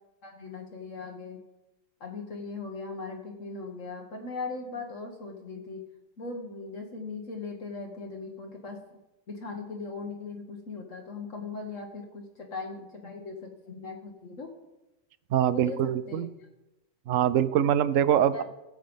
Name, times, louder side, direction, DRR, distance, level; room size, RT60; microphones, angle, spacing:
voice 1, 0.2-1.4 2.0-5.8 6.2-9.0 9.3-14.5 15.5-16.2 18.3-18.4, left 4 dB, 60° left, 1 dB, 1.6 m, -39 dB
voice 2, 15.3-16.3 17.1-18.4, right 10 dB, 70° right, 16 dB, 0.9 m, -24 dB
15.5 x 7.5 x 5.2 m, 0.99 s
omnidirectional pair, 1.6 m